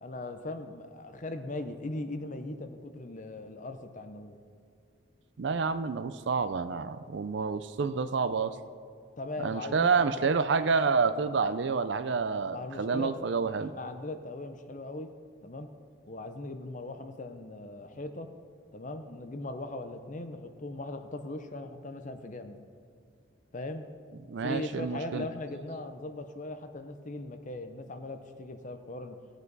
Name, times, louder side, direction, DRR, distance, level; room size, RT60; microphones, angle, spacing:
voice 1, 0.0-4.4 9.2-10.4 12.5-13.2 13.7-15.1 15.4-15.7 16.1-18.3 18.7-22.6 23.5-23.9 24.4-29.2, left 2 dB, 40° left, 8 dB, 0.6 m, -39 dB
voice 2, 5.4-8.6 9.4-13.7 24.3-25.2, right 5 dB, 55° right, 12 dB, 0.4 m, -28 dB
16.5 x 8.1 x 4.0 m, 2.2 s
head